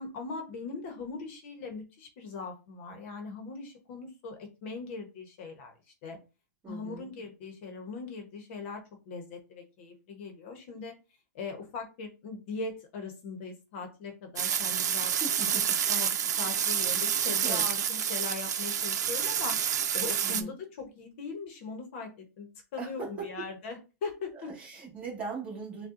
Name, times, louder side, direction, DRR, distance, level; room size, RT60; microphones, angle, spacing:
voice 1, 0.0-5.7 6.0-6.2 6.7-10.9 11.3-15.1 15.9-16.1 16.4-19.6 19.9-24.5, left 4 dB, 45° left, 4 dB, 1.0 m, -40 dB
voice 2, 6.6-7.1 15.2-15.6 17.4-17.7 20.2-20.6 22.8-23.3 24.5-25.9, right 4 dB, 15° right, -4 dB, 1.7 m, -39 dB
sound 1, 14.4-20.4, right 8 dB, 80° right, 0.6 m, -28 dB
6.5 x 2.3 x 2.5 m, 0.30 s
hypercardioid pair, 160°, 9 cm